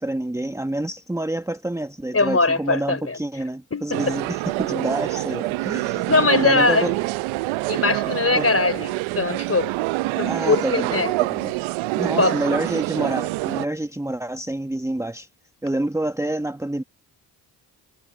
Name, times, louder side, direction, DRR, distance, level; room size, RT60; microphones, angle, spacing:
voice 1, 0.0-6.9 8.3-8.5 10.2-11.6 12.0-15.3 15.6-16.8, right 1 dB, 5° right, 1.2 m, -28 dB
voice 2, 2.1-3.2 3.7-4.0 5.7-6.9 7.7-9.7 10.2-11.1 12.2-12.4, left 3 dB, 30° left, 3.8 m, -21 dB
sound 1, 3.9-13.7, right 21 dB, 80° right, 0.7 m, -26 dB
hypercardioid pair, 45°, 47 cm